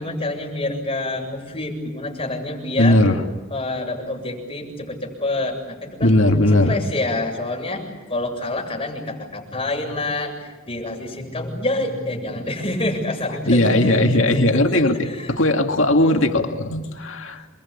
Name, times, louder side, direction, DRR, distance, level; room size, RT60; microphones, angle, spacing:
voice 1, 0.0-3.0 3.5-6.2 6.5-15.4 15.9-16.2, left 2 dB, 30° left, 1 dB, 7.7 m, -27 dB
voice 2, 2.8-3.2 6.0-6.7 13.5-14.9 15.4-17.4, left 1 dB, 70° left, 4 dB, 2.6 m, -17 dB
28.5 x 23.0 x 8.9 m, 1.2 s
head